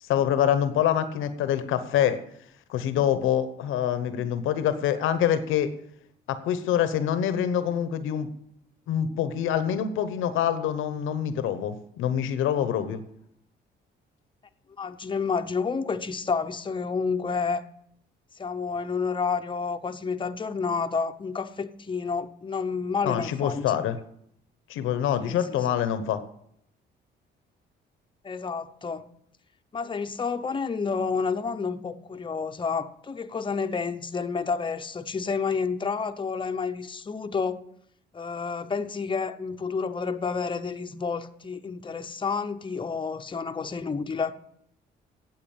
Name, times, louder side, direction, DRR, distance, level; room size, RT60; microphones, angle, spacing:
voice 1, 0.0-2.2 2.7-5.7 6.3-8.3 8.9-13.0 23.0-24.0 24.7-26.2, left 9 dB, 90° left, 1.0 m, -25 dB
voice 2, 14.8-17.6 18.3-23.9 25.2-25.4 28.2-29.1 29.7-37.6 38.1-44.4, left 5 dB, 25° left, 0.8 m, -30 dB
8.9 x 8.0 x 8.8 m
cardioid pair, 90°, 20 cm